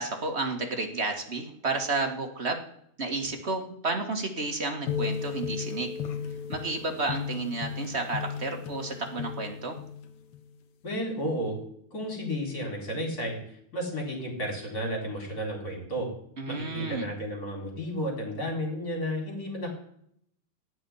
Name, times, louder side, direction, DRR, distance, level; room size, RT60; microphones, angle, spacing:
voice 1, 0.0-2.6 3.0-5.9 6.5-9.8 16.4-17.1, right 3 dB, 30° right, 3 dB, 1.3 m, -31 dB
sound 1, 4.9-10.5, left 7 dB, 70° left, 2.3 m, -35 dB
voice 2, 10.8-11.6 11.9-16.1 16.5-19.7, equal, 30° left, 1 dB, 4.6 m, -32 dB
17.0 x 6.3 x 9.9 m, 0.72 s
omnidirectional pair, 3.3 m